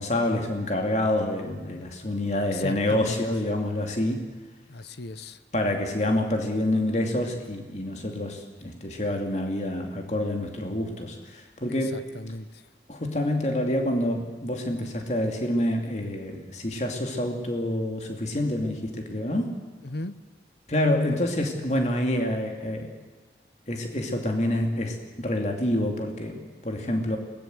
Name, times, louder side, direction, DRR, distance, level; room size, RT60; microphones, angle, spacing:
voice 1, 0.0-4.2 5.5-12.1 12.9-19.6 20.7-22.9 23.7-27.2, left 1 dB, 40° left, 3 dB, 2.7 m, -27 dB
voice 2, 2.5-3.2 4.7-5.4 11.8-12.6 19.8-20.2, left 2 dB, 75° left, 13 dB, 1.0 m, -36 dB
22.0 x 19.0 x 7.9 m, 1.3 s
head